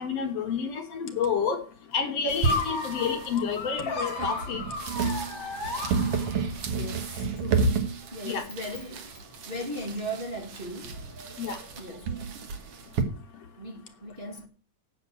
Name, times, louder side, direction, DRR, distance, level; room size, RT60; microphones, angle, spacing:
voice 1, 0.0-1.6 1.9-4.6 8.2-8.5 11.4-11.6, left 6 dB, 65° left, 2.3 m, -29 dB
sound 1, 2.3-13.0, right 4 dB, 60° right, 2.2 m, -31 dB
sound 2, 2.4-6.6, left 3 dB, 40° left, 2.7 m, -34 dB
voice 2, 6.7-11.0 11.8-12.2 13.6-14.5, right 1 dB, 20° right, 1.7 m, -38 dB
8.7 x 6.8 x 8.2 m
omnidirectional pair, 3.3 m